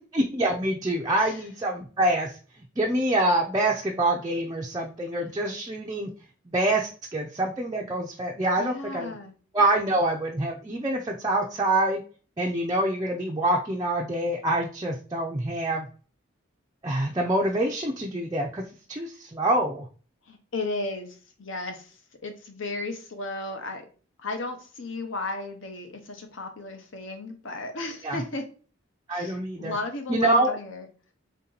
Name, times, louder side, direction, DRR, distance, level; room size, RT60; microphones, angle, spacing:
voice 1, 0.1-2.4 2.8-6.1 6.5-9.2 9.5-12.0 12.4-15.9 16.8-18.6 18.9-19.9 28.0-28.2 29.1-29.7 30.1-30.6, right 1 dB, 20° right, 0 dB, 0.4 m, -26 dB
voice 2, 8.6-9.3 20.3-23.8 24.2-28.5 29.1-30.9, left 2 dB, 65° left, 5 dB, 0.8 m, -35 dB
3.8 x 2.8 x 3.8 m, 0.39 s
head